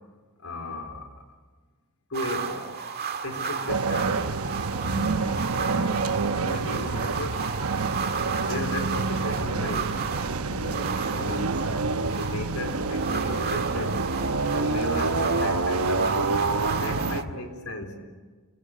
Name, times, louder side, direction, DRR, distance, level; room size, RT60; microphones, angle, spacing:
voice 1, 0.4-1.1 2.1-2.8 3.2-4.2 6.4-7.7 8.4-10.0 11.1-11.7 12.0-14.0 14.5-18.0, left 1 dB, 90° left, 5 dB, 3.8 m, -35 dB
sound 1, 2.1-17.2, right 6 dB, 45° right, 1.8 m, -34 dB
sound 2, 3.7-17.2, right 3 dB, 90° right, 1.0 m, -27 dB
voice 2, 4.9-5.4 5.7-6.2 10.5-11.3 16.9-17.4, left 2 dB, 70° left, 8 dB, 0.9 m, -39 dB
29.5 x 20.5 x 8.5 m, 1.4 s
head